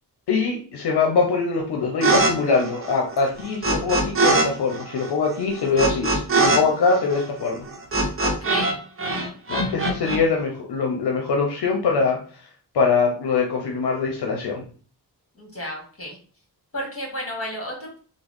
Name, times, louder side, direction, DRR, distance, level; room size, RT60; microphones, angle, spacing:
voice 1, 0.3-7.7 9.5-12.2 12.7-14.6, left 4 dB, 75° left, 0 dB, 0.7 m, -23 dB
sound 1, 2.0-2.3 2.6-4.5 4.7-8.7 9.0-10.2, right 2 dB, 30° right, 0.9 m, -22 dB
voice 2, 8.2-8.8 15.4-16.2 16.7-18.0, equal, 35° left, 0 dB, 1.7 m, -32 dB
3.5 x 2.1 x 3.5 m, 0.41 s
cardioid pair, 80°, 40 cm